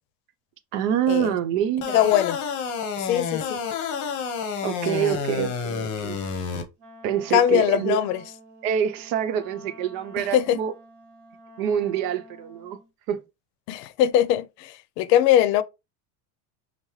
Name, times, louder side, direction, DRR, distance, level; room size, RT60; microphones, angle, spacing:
voice 1, 0.7-2.0 4.6-6.2 7.0-8.0 8.6-10.7 11.6-12.8 13.1-13.2, right 9 dB, 65° right, 0.7 m, -26 dB
sound 1, 1.8-6.6, left 6 dB, 40° left, 0.9 m, -29 dB
voice 2, 1.9-2.4 3.0-3.6 4.9-5.0 7.3-8.2 10.2-10.6 13.7-15.6, left 11 dB, 90° left, 0.6 m, -21 dB
Wind instrument woodwind instrument, 6.8-12.9, equal, 40° right, 1.0 m, -48 dB
5.4 x 2.1 x 3.0 m
supercardioid pair, 130°, 48 cm